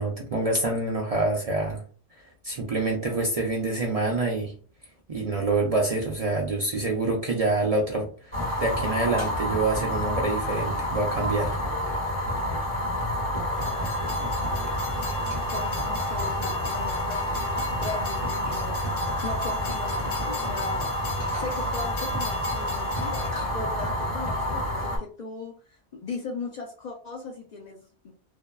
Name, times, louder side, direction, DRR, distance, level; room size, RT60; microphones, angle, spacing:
voice 1, 0.0-1.8 2.2-4.5 5.1-11.5, right 2 dB, 50° right, 0 dB, 0.5 m, -26 dB
Fire, 8.3-25.0, left 1 dB, 30° left, 1.1 m, -28 dB
Train, 13.5-23.3, left 4 dB, 80° left, 0.9 m, -41 dB
voice 2, 15.2-20.9 21.3-28.1, left 3 dB, 55° left, 1 dB, 0.5 m, -38 dB
2.6 x 2.2 x 2.2 m, 0.41 s
omnidirectional pair, 1.0 m